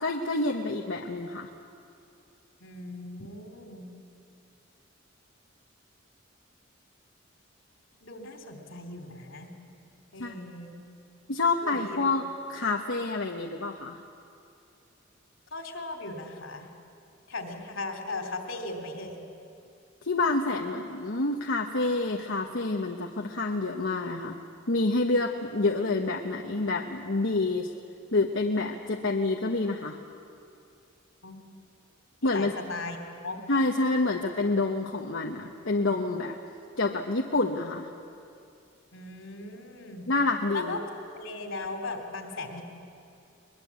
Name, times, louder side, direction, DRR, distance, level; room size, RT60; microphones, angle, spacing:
voice 1, 0.0-1.5 10.2-10.4 11.3-12.2 12.5-14.0 20.0-24.4 24.7-27.7 28.1-30.0 32.2-32.5 33.5-36.3 36.8-37.9 40.1-40.7, left 2 dB, 75° left, 2 dB, 1.1 m, -28 dB
voice 2, 2.6-3.9 8.0-9.5 10.1-10.8 11.6-12.1 15.5-16.7 17.3-19.2 31.2-31.5 32.2-33.0 33.2-33.4 38.9-40.1 40.5-40.8 41.2-42.6, left 2 dB, 90° left, 4 dB, 3.1 m, -38 dB
22.5 x 21.0 x 8.4 m, 2.6 s
head